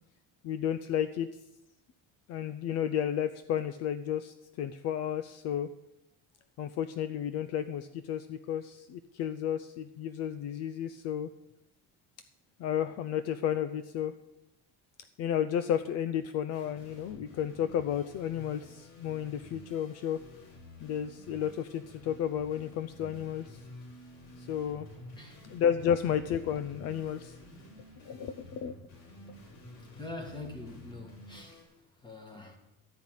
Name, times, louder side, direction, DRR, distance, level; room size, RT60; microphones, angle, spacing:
voice 1, 0.4-1.3 2.3-5.7 6.6-11.3 12.6-14.1 15.2-20.2 20.8-23.6 24.4-24.9 25.4-27.4 28.0-28.7, left 9 dB, 50° left, 0.5 m, -32 dB
sound 1, 16.5-31.6, left 1 dB, 85° left, 5.8 m, -51 dB
voice 2, 30.0-31.6 32.0-32.6, left 2 dB, 15° left, 1.7 m, -44 dB
12.5 x 5.6 x 8.9 m
cardioid pair, 165°, 32 cm